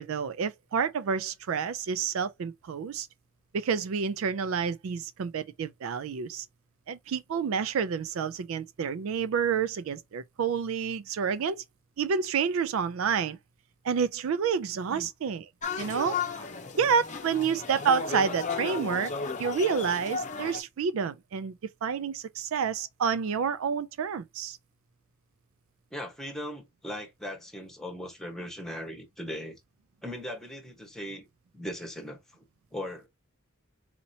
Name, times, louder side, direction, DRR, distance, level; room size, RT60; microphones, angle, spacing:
voice 1, 0.0-3.1 3.5-6.4 6.9-11.6 12.0-13.4 13.8-15.4 15.8-16.2 16.8-19.1 19.4-24.6, right 6 dB, 75° right, 0.4 m, -29 dB
sound 1, 15.6-20.6, left 5 dB, 35° left, 0.7 m, -34 dB
voice 2, 25.9-29.6 30.0-31.3 31.5-32.2 32.7-33.1, equal, ahead, 1.2 m, -38 dB
4.2 x 2.8 x 2.7 m
head